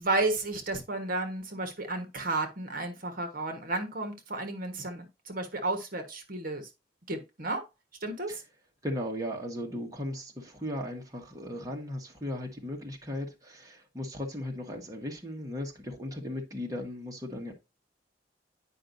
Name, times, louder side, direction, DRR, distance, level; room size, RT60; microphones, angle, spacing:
voice 1, 0.0-6.7 7.1-7.6 8.0-8.4, right 2 dB, 50° right, 1.4 m, -32 dB
voice 2, 8.8-17.5, left 1 dB, 20° right, 1.4 m, -37 dB
9.9 x 5.3 x 2.6 m
head